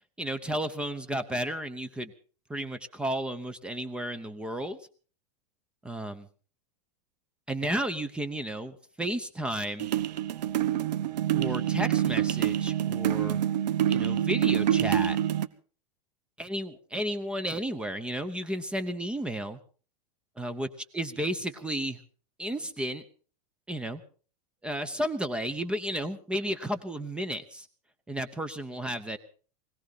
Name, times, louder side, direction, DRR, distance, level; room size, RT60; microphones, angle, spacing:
voice 1, 0.2-2.1 2.5-4.8 5.8-6.3 7.5-9.9 11.3-13.4 13.9-15.2 16.4-19.6 20.4-20.7 20.9-22.0 22.4-23.0 23.7-24.0 24.6-27.7 28.1-29.2, right 1 dB, 5° right, 11 dB, 0.8 m, -33 dB
sound 1, 9.8-15.5, right 11 dB, 85° right, 1.2 m, -26 dB
21.5 x 17.0 x 4.0 m, 0.40 s
supercardioid pair, 175°, 21 cm